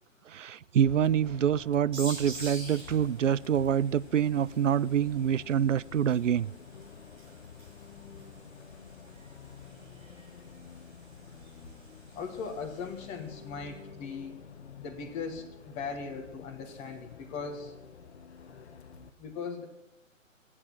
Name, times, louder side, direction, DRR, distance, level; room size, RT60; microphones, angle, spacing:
voice 1, 0.3-6.5, right 9 dB, 65° right, 21 dB, 0.5 m, -26 dB
Bus, 0.8-19.1, left 6 dB, 55° left, 1.1 m, -49 dB
sound 1, 1.9-13.3, right 1 dB, 15° right, 6.6 m, -49 dB
voice 2, 12.1-14.3 14.8-17.7 19.2-19.6, left 5 dB, 15° left, 2 dB, 1.3 m, -39 dB
22.5 x 8.6 x 6.1 m, 0.90 s
figure-of-eight pair, 135°, 40 cm